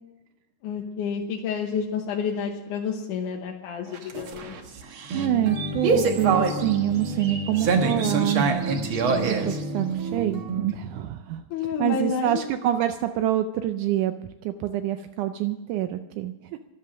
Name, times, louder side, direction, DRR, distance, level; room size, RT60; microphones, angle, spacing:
voice 1, 0.6-4.5 11.5-12.4, left 6 dB, 70° left, 0 dB, 2.3 m, -29 dB
sound 1, 3.9-10.7, right 4 dB, 65° right, 1.3 m, -25 dB
voice 2, 5.1-8.5 9.2-11.4 11.8-14.1 14.4-16.6, right 13 dB, 85° right, 8 dB, 1.8 m, -26 dB
13.0 x 12.0 x 6.2 m, 1.1 s
omnidirectional pair, 4.2 m